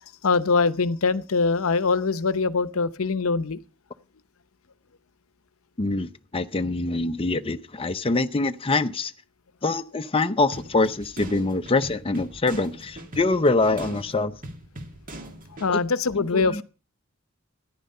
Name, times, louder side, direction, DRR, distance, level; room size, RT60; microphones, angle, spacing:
voice 1, 0.2-3.6 15.6-16.6, left 4 dB, 80° left, 0.8 m, -23 dB
voice 2, 5.8-9.1 9.6-14.3 15.7-15.8 16.2-16.6, left 3 dB, 25° left, 0.6 m, -24 dB
sound 1, 10.5-15.7, right 1 dB, 40° right, 2.1 m, -41 dB
14.0 x 10.5 x 5.5 m
head